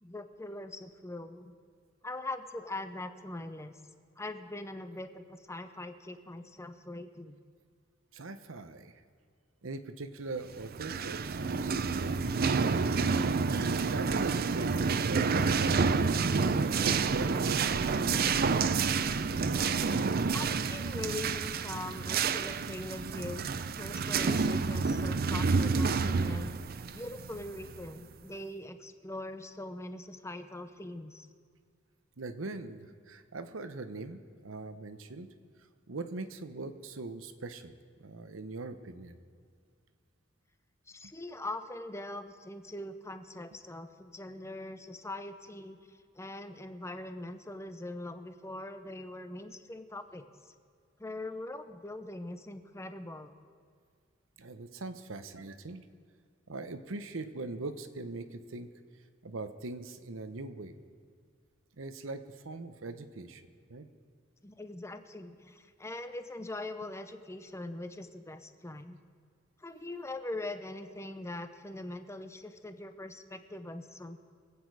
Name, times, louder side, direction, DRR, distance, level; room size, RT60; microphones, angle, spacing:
voice 1, 0.0-1.6 2.0-3.8 4.2-7.4 20.3-23.5 23.8-26.6 26.9-31.3 40.9-50.5 51.0-53.3 64.4-69.0 69.6-74.2, left 2 dB, 15° left, 9 dB, 0.7 m, -42 dB
voice 2, 8.1-8.9 9.6-12.9 13.7-14.7 15.0-15.8 16.4-18.5 32.2-35.3 35.9-37.7 38.0-39.2 54.4-55.8 56.5-58.7 59.2-60.7 61.8-63.9, right 3 dB, 80° right, 10 dB, 0.9 m, -41 dB
sound 1, 10.6-28.0, right 4 dB, 50° right, 0.5 m, -29 dB
24.0 x 8.8 x 4.8 m, 2.1 s
head